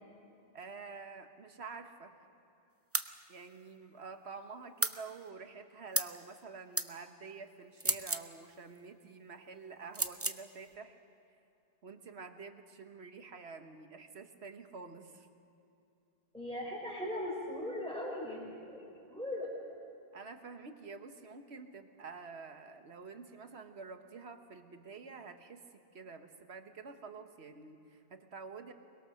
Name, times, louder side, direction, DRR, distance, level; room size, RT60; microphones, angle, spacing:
voice 1, 0.5-2.1 3.3-11.0 11.8-15.3 20.1-28.7, right 4 dB, 90° right, 7 dB, 1.5 m, -48 dB
sound 1, 2.9-3.1 4.8-5.0 5.9-6.2 6.8-6.9 7.8-8.3 9.9-10.4, right 2 dB, 15° right, 0.5 m, -33 dB
voice 2, 16.3-19.5, left 1 dB, 5° left, -7 dB, 4.2 m, -39 dB
23.0 x 21.5 x 6.5 m, 2.7 s
omnidirectional pair, 1.1 m